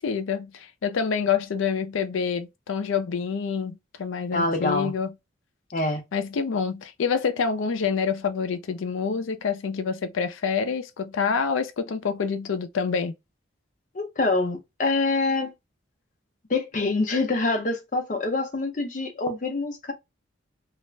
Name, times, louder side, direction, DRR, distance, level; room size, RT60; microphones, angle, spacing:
voice 1, 0.0-5.1 6.1-13.1, left 6 dB, 85° left, 0.4 m, -27 dB
voice 2, 4.3-4.9 5.7-6.0 13.9-15.5 16.5-19.9, left 2 dB, 40° left, 0.6 m, -25 dB
2.4 x 2.1 x 3.1 m
head